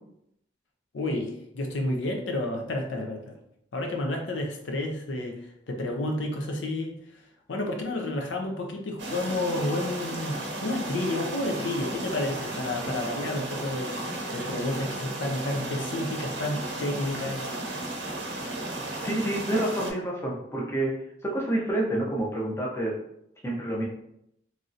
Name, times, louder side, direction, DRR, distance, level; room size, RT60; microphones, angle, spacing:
voice 1, 0.9-3.4 3.7-7.0 7.5-14.0 14.3-17.5, left 1 dB, 80° left, 3 dB, 0.5 m, -30 dB
sound 1, 9.0-19.9, right 2 dB, 70° right, 0.7 m, -34 dB
voice 2, 19.0-20.9 21.2-23.0 23.4-23.8, right 1 dB, 15° left, -3 dB, 0.5 m, -28 dB
3.0 x 2.6 x 2.4 m, 0.76 s
head